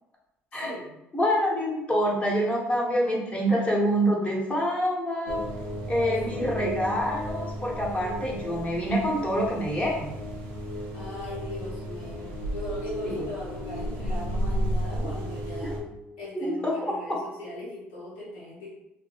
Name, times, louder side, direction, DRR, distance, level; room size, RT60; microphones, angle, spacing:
voice 1, 0.5-0.9 5.9-6.5 10.9-15.8 16.2-18.7, left 1 dB, 85° left, -6 dB, 1.0 m, -39 dB
voice 2, 1.1-5.4 5.9-10.1 13.0-13.2 15.6-15.7 16.3-17.2, equal, 20° left, -3 dB, 1.0 m, -26 dB
sound 1, 5.3-15.8, equal, 80° right, 0.6 m, -33 dB
2.7 x 2.2 x 2.9 m, 0.92 s
hypercardioid pair, 60°, 6 cm